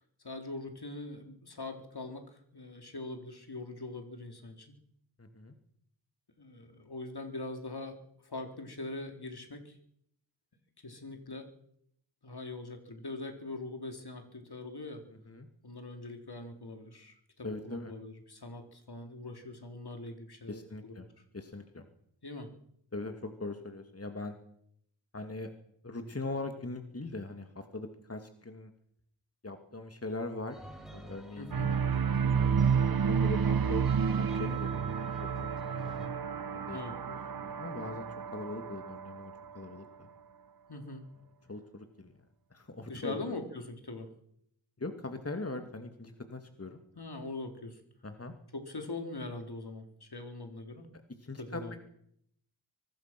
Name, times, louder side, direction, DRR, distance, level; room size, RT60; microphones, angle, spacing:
voice 1, 0.2-4.7 6.4-8.0 8.2-9.8 10.8-11.5 12.2-15.0 15.6-21.1 22.2-22.5 31.4-32.2 36.7-37.0 40.7-41.0 42.9-44.1 47.0-47.8 48.5-50.9 51.4-51.7, left 2 dB, 55° left, 5 dB, 4.0 m, -42 dB
voice 2, 5.2-5.5 15.3-15.5 17.4-17.9 20.5-21.1 21.3-21.8 22.9-24.3 25.1-25.5 25.8-28.7 29.4-30.6 30.9-31.6 32.3-33.8 34.1-35.8 36.5-36.8 37.1-40.1 41.5-42.1 42.5-43.2 44.8-46.8 48.0-48.3 51.2-51.8, left 2 dB, 30° left, 6 dB, 2.5 m, -41 dB
sound 1, 30.5-36.1, right 1 dB, ahead, 7.2 m, -50 dB
sound 2, 31.5-39.7, right 6 dB, 50° right, 1.1 m, -30 dB
24.0 x 20.0 x 6.2 m, 0.72 s
cardioid pair, 45°, 47 cm